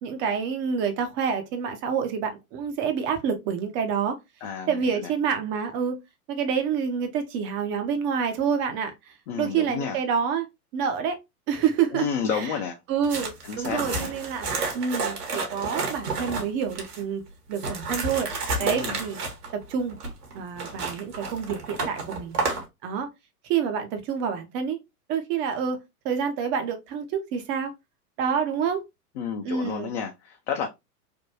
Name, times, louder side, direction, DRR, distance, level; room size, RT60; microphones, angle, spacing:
voice 1, 0.0-4.2 4.7-6.0 6.3-10.5 10.7-11.2 11.5-12.1 12.3-12.5 12.9-14.5 14.7-17.2 17.5-18.3 18.6-19.2 19.5-20.0 20.3-22.5 22.8-23.1 23.5-24.8 25.1-25.8 26.0-27.7 28.2-28.8 29.4-29.9, right 7 dB, 25° right, 0.5 m, -27 dB
voice 2, 4.4-5.1 9.3-10.0 11.9-12.8 13.5-14.1 18.6-19.0 29.2-30.7, left 6 dB, 45° left, 0.6 m, -31 dB
sound 1, 13.0-17.0 17.5-22.6, right 3 dB, 80° right, 1.3 m, -31 dB
3.5 x 2.2 x 2.6 m
hypercardioid pair, 105°, 46 cm